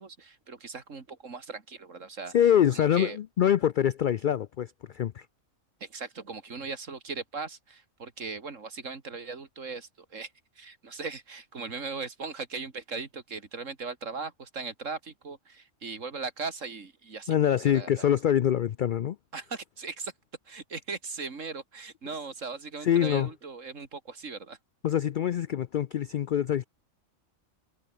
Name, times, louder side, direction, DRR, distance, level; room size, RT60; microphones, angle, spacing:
voice 1, 0.0-2.4 2.7-3.2 5.8-18.1 19.3-20.1 20.4-24.6, right 4 dB, 65° right, 2.7 m, -39 dB
voice 2, 2.3-5.3 17.3-19.2 22.8-23.3 24.8-26.7, left 10 dB, 80° left, 0.4 m, -25 dB
omnidirectional pair, 1.4 m